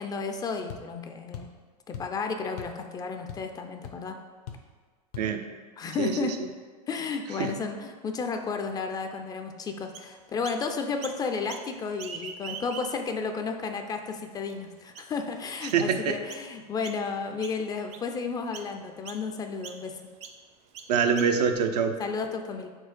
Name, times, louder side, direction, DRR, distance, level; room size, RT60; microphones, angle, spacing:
voice 1, 0.0-1.5 1.9-4.2 5.8-6.4 6.9-20.0 22.0-22.7, left 4 dB, 20° left, 5 dB, 0.4 m, -32 dB
sound 1, 0.7-0.9 1.3-1.6 1.9-2.2 2.6-2.8 3.1-3.6 3.8-4.0 4.5-4.7 5.1-5.3, left 8 dB, 70° left, 0.8 m, -40 dB
Chirp tweet, 9.9-10.6 11.0-11.7 11.9-13.1 13.7-13.8 14.5-14.6 14.9-15.2 15.7-15.9 16.3-16.5 16.8-17.2 17.4-18.1 18.5-18.7 19.0-19.2 19.6-19.8 20.2-20.4 20.7-21.5, right 6 dB, 35° right, 0.5 m, -42 dB
voice 2, 15.7-16.1 20.9-22.0, right 6 dB, 85° right, 6 dB, 0.6 m, -24 dB
4.5 x 4.3 x 5.0 m, 1.5 s
supercardioid pair, 125°, 20 cm